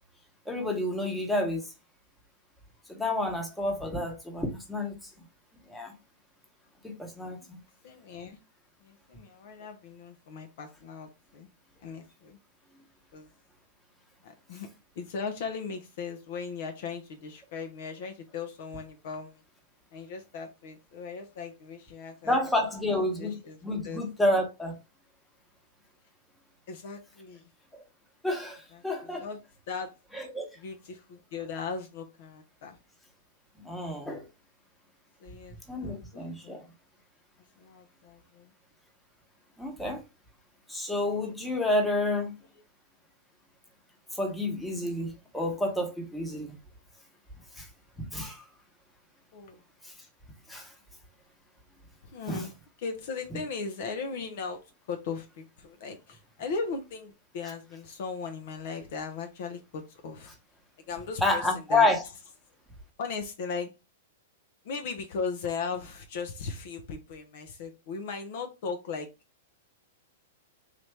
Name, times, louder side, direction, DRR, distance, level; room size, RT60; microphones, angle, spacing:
voice 1, 0.5-1.7 2.9-5.0 5.7-5.9 6.8-7.6 22.2-24.8 28.2-29.3 30.1-30.5 33.6-34.3 35.7-36.6 39.6-40.0 40.7-42.3 44.1-46.6 47.6-47.7 48.0-48.4 49.8-49.9 50.5-50.7 52.3-52.5 61.2-62.0, left 1 dB, 5° left, 1.1 m, -29 dB
voice 2, 7.8-8.4 8.8-11.5 11.8-12.4 13.1-13.3 14.2-14.7 15.0-19.4 19.9-22.4 22.9-23.6 23.8-24.0 26.7-27.4 29.0-29.4 29.7-30.0 30.6-32.8 35.2-36.6 37.6-38.5 49.3-49.6 52.0-52.5 52.8-60.3 60.9-61.9 63.0-63.7 64.6-69.1, left 5 dB, 60° left, 0.8 m, -38 dB
3.2 x 2.6 x 3.4 m
hypercardioid pair, 110°, 0 cm